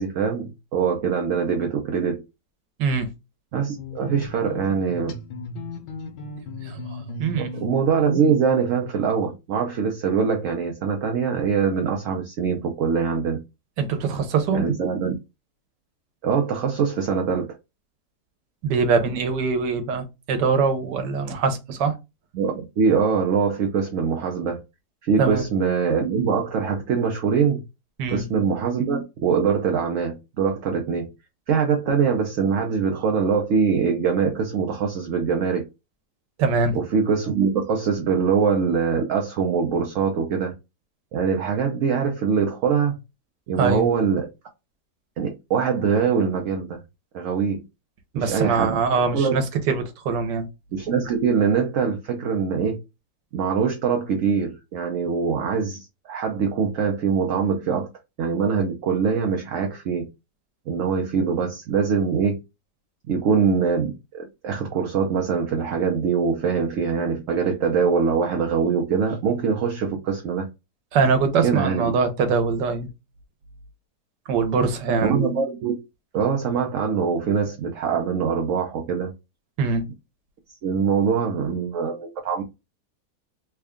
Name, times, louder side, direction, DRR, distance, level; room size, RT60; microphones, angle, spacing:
voice 1, 0.0-2.2 3.5-5.2 7.4-13.4 14.5-15.2 16.2-17.5 22.3-24.6 25.0-27.6 28.1-31.1 31.5-35.7 36.7-40.5 41.1-43.0 43.5-44.3 45.2-46.8 47.1-47.6 48.1-48.7 49.1-49.4 50.7-52.8 53.3-57.9 58.2-60.1 60.7-62.4 63.1-70.5 71.4-71.9 75.0-75.8 76.1-79.1 80.6-82.4, right 6 dB, 60° right, 0.9 m, -23 dB
sound 1, 3.8-8.9, left 2 dB, 90° left, 1.4 m, -36 dB
voice 2, 6.6-7.5 13.8-14.6 18.6-21.9 25.2-25.5 28.0-28.2 36.4-36.8 43.6-43.8 48.1-50.5 70.9-72.9 74.3-75.2 79.6-79.9, right 5 dB, 90° right, 1.4 m, -23 dB
3.5 x 2.3 x 3.5 m
omnidirectional pair, 1.8 m